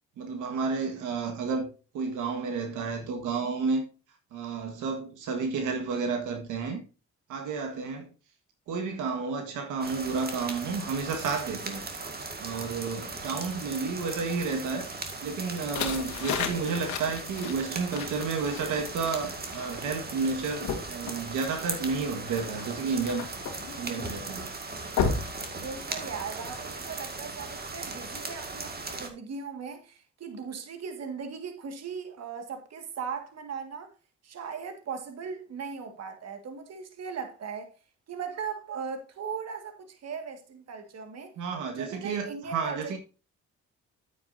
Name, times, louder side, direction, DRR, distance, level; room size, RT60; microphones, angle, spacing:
voice 1, 0.2-3.8 4.3-6.8 7.3-8.1 8.7-11.8 12.4-14.9 15.2-23.3 23.8-24.5 41.4-43.0, right 4 dB, 85° right, 1.6 m, -31 dB
sound 1, 9.8-29.1, right 3 dB, 30° right, 2.0 m, -38 dB
sound 2, 15.5-26.2, left 6 dB, 75° left, 1.8 m, -36 dB
voice 2, 25.6-33.9 34.2-37.7 38.1-41.3 41.7-43.0, right 6 dB, 60° right, 1.8 m, -38 dB
9.4 x 8.9 x 2.6 m
cardioid pair, 90°, 30 cm